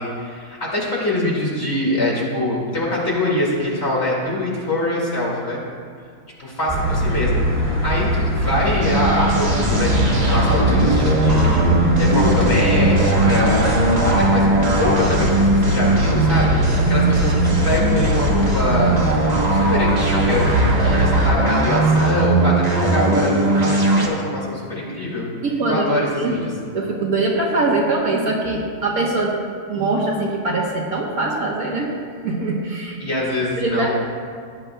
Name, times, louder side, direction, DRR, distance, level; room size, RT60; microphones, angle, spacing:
voice 1, 0.0-5.6 6.4-11.7 12.0-17.3 17.6-19.0 19.5-20.5 20.8-25.3 25.7-26.5 33.0-33.9, left 1 dB, 40° left, -5 dB, 2.5 m, -24 dB
sound 1, 6.7-21.3, equal, 10° right, 1.7 m, -22 dB
sound 2, 8.8-24.1, right 2 dB, 30° right, 1.0 m, -19 dB
voice 2, 25.4-25.8 26.2-26.5 26.7-29.4 29.7-31.9 32.2-33.0 33.6-33.9, right 2 dB, 60° right, -3 dB, 1.6 m, -22 dB
16.5 x 9.5 x 2.3 m, 2.1 s
omnidirectional pair, 1.7 m